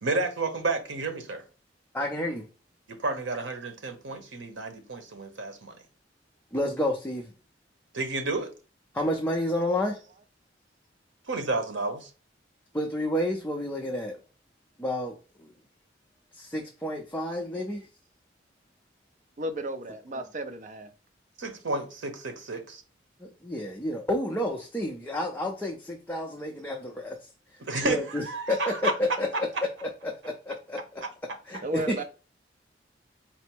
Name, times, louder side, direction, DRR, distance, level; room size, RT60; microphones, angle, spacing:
voice 1, 0.0-1.4 2.9-5.7 7.9-8.5 11.3-12.1 21.4-22.8 27.6-28.9 29.3-29.6 31.0-31.1, right 3 dB, 90° right, 0.9 m, -31 dB
voice 2, 1.9-2.4 6.5-7.3 8.9-10.0 12.7-14.2 14.8-15.5 16.3-17.8 23.2-27.2 27.8-29.5 29.8-31.0 31.5-32.0, left 1 dB, 10° left, 0.5 m, -30 dB
voice 3, 19.4-20.9 31.6-32.0, right 1 dB, 45° right, 0.6 m, -33 dB
4.3 x 2.0 x 4.4 m
head